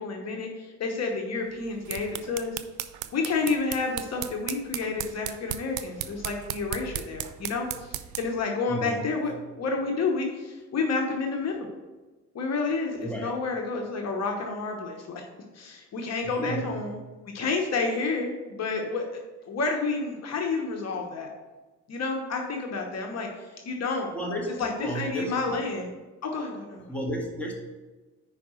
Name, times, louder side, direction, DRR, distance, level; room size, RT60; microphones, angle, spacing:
voice 1, 0.0-2.5 3.1-11.6 12.3-15.2 15.5-19.1 19.4-21.3 21.9-24.1 24.6-25.9 26.2-26.8, left 4 dB, 60° left, 2 dB, 1.1 m, -30 dB
sound 1, 1.6-8.4, right 12 dB, 80° right, 0.5 m, -37 dB
voice 2, 8.7-9.2 13.0-13.3 16.2-16.7 24.1-25.6 26.9-27.5, right 1 dB, 5° left, -2 dB, 1.8 m, -33 dB
5.1 x 4.9 x 6.3 m, 1.2 s
cardioid pair, 90°, 30 cm